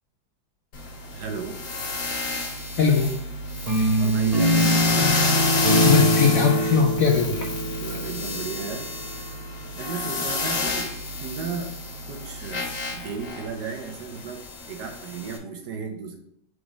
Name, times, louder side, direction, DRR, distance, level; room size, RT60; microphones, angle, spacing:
sound 1, 0.7-15.4, left 3 dB, 85° left, 1.9 m, -30 dB
voice 1, 1.1-1.6 4.0-4.8 7.8-8.9 9.8-10.9 11.2-11.8 12.1-16.2, right 5 dB, 65° right, 3 dB, 1.4 m, -34 dB
voice 2, 2.8-3.1 3.9-4.0 5.9-7.5, left 6 dB, 70° left, 2 dB, 0.8 m, -20 dB
sound 2, 3.7-8.8, equal, 85° right, 0.3 m, -23 dB
4.9 x 3.9 x 4.9 m, 0.69 s
omnidirectional pair, 2.0 m